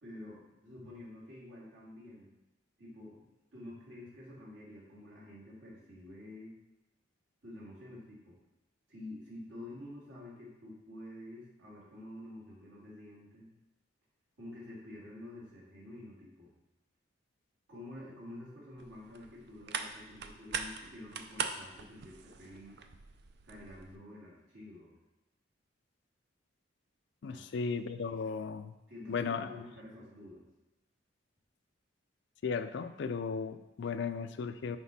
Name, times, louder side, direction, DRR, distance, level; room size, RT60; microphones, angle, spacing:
voice 1, 0.0-2.3 2.8-3.3 3.5-6.6 7.4-8.4 8.9-13.5 14.4-16.5 17.7-22.8 23.4-24.9 27.3-27.4 28.9-30.4, left 1 dB, 90° right, -6 dB, 2.4 m, -49 dB
sound 1, 18.8-24.0, right 6 dB, 55° right, 0.4 m, -42 dB
voice 2, 27.2-28.7 29.1-29.5 32.4-34.8, left 5 dB, 65° left, 10 dB, 0.4 m, -35 dB
6.1 x 5.1 x 4.1 m, 1.0 s
head